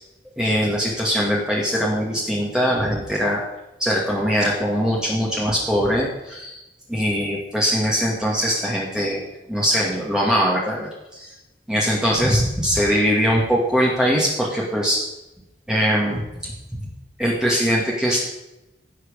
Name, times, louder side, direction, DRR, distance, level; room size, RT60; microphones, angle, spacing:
voice 1, 0.4-3.4 3.8-6.6 6.9-9.2 9.5-11.3 11.7-15.0 15.7-16.8 17.2-18.2, equal, 5° right, -4 dB, 2.2 m, -21 dB
16.0 x 6.5 x 6.7 m, 0.96 s
head